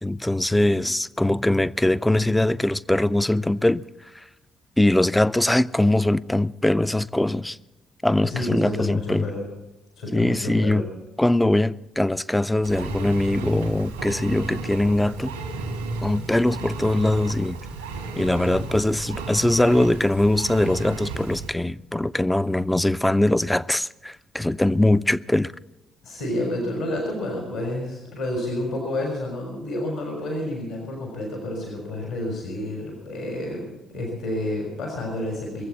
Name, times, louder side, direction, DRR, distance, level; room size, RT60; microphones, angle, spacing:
voice 1, 0.0-3.8 4.8-7.6 8.0-9.3 10.1-10.8 11.2-15.3 16.0-17.6 18.2-25.5, left 1 dB, 10° left, 0.5 m, -22 dB
voice 2, 8.2-9.5 10.0-10.9 24.5-24.7 26.0-35.6, left 1 dB, 75° left, 3.7 m, -30 dB
Engine, 12.6-21.5, right 3 dB, 90° right, 1.9 m, -33 dB
21.0 x 7.8 x 8.2 m
hypercardioid pair, 45°, 0 cm